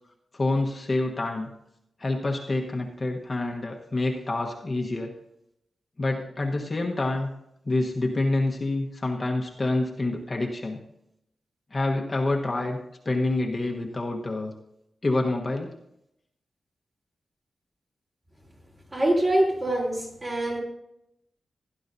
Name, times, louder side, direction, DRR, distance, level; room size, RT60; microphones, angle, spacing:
voice 1, 0.3-1.5 2.0-5.1 6.0-7.3 7.6-10.8 11.7-14.5 15.0-15.8, left 2 dB, 30° left, 0 dB, 1.2 m, -27 dB
voice 2, 18.9-20.6, right 1 dB, 30° right, -3 dB, 3.6 m, -24 dB
16.5 x 11.0 x 2.7 m, 0.80 s
wide cardioid pair, 135°, 0 cm